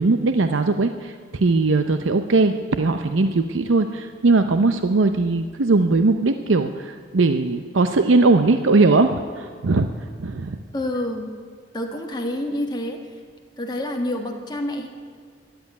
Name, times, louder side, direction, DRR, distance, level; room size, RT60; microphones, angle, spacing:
voice 1, 0.0-9.9 10.2-10.6, right 3 dB, 85° right, 8 dB, 0.7 m, -19 dB
voice 2, 10.7-11.3 11.7-13.0 13.6-14.9, left 1 dB, 20° left, 2 dB, 1.7 m, -27 dB
13.5 x 10.5 x 9.6 m, 2.1 s
head